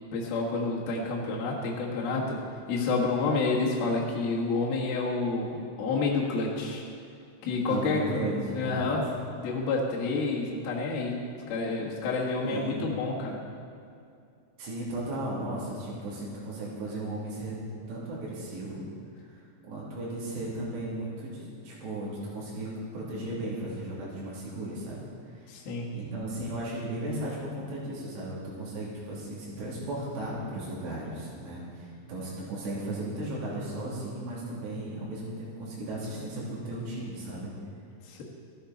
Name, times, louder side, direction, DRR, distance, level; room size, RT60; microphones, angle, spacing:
voice 1, 0.1-2.4 2.7-6.8 7.4-8.0 8.5-9.1 9.4-11.2 11.5-13.4 25.5-25.9 38.0-38.2, left 3 dB, 60° left, -3 dB, 3.1 m, -29 dB
voice 2, 7.7-8.8 12.4-12.9 14.6-17.6 17.9-18.8 19.3-25.0 25.3-25.5 25.9-37.5, right 1 dB, 65° right, -7 dB, 4.9 m, -35 dB
16.0 x 11.5 x 4.1 m, 2.4 s
omnidirectional pair, 5.5 m